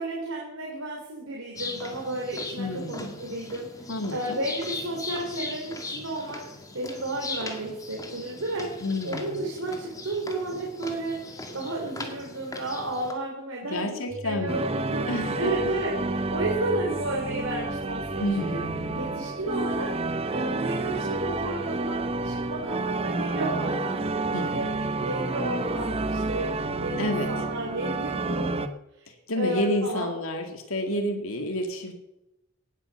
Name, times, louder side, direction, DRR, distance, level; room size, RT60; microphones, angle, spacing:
voice 1, 0.0-3.7 4.1-6.4 6.7-8.7 9.0-11.2 11.5-15.1 15.3-18.6 18.9-19.9 20.3-24.0 24.4-24.7 25.0-26.5 26.8-28.5 29.0-29.1 29.4-30.1, right 2 dB, 90° right, -1 dB, 3.1 m, -32 dB
sound 1, 1.5-13.1, left 2 dB, 15° left, 1.9 m, -39 dB
voice 2, 2.6-3.2 3.9-4.4 8.8-9.4 13.6-14.7 15.1-15.5 18.2-18.7 24.3-24.7 27.0-27.3 29.1-31.9, left 1 dB, 80° left, 4 dB, 2.2 m, -30 dB
sound 2, 14.1-20.9, right 2 dB, ahead, 5.2 m, -47 dB
sound 3, 14.5-28.7, right 2 dB, 30° right, 0.8 m, -30 dB
18.5 x 8.5 x 6.9 m, 0.93 s
head